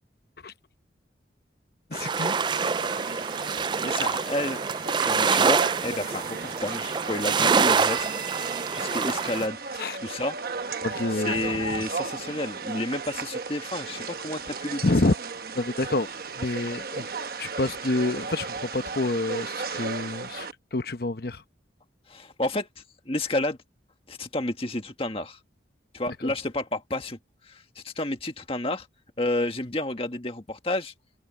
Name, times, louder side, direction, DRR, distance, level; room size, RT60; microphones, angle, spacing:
voice 1, 1.9-2.4 9.8-10.0 10.8-11.6 14.8-15.1 15.5-16.1 16.4-17.1 17.4-20.5 20.7-21.4 26.1-26.3, left 2 dB, 55° left, 1.0 m, -27 dB
sound 1, 1.9-9.5, right 5 dB, 25° right, 0.3 m, -26 dB
sound 2, 2.5-20.5, right 4 dB, 55° right, 1.1 m, -35 dB
voice 2, 3.8-4.6 4.9-8.1 8.3-9.6 10.0-10.4 11.1-14.8 22.1-22.7 23.0-23.6 24.1-25.4 25.9-27.2 27.4-28.9 29.2-30.9, left 2 dB, 30° left, 1.7 m, -30 dB
open air
head